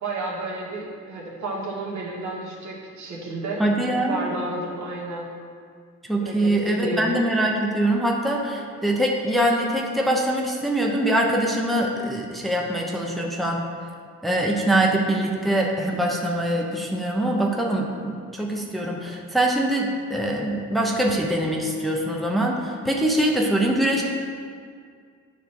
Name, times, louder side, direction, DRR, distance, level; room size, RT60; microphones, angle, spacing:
voice 1, 0.0-3.6 4.1-5.3 6.2-7.1, right 2 dB, 70° right, -3 dB, 1.7 m, -31 dB
voice 2, 3.6-4.2 6.1-13.6 14.2-24.0, right 1 dB, ahead, -1 dB, 0.9 m, -23 dB
9.1 x 3.3 x 6.0 m, 2.1 s
cardioid pair, 90°, 30 cm